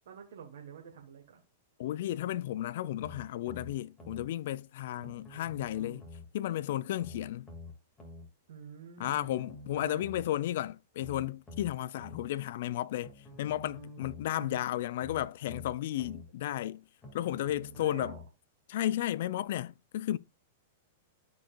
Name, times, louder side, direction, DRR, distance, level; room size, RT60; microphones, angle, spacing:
voice 1, 0.0-1.4 8.5-9.4 9.7-10.1 14.4-14.6 17.8-18.2, right 7 dB, 75° right, 1.5 m, -48 dB
voice 2, 1.8-6.1 6.3-7.5 9.0-16.8 17.1-18.2 18.7-20.2, left 13 dB, 65° left, 0.3 m, -33 dB
sound 1, 3.0-4.3 5.0-6.3 7.0-8.3 9.0-10.3 11.0-12.3 13.0-14.3 15.0-16.3 17.0-18.3 19.0-19.1, left 2 dB, 15° left, 2.4 m, -48 dB
12.5 x 4.7 x 2.5 m
hypercardioid pair, 115°, 0 cm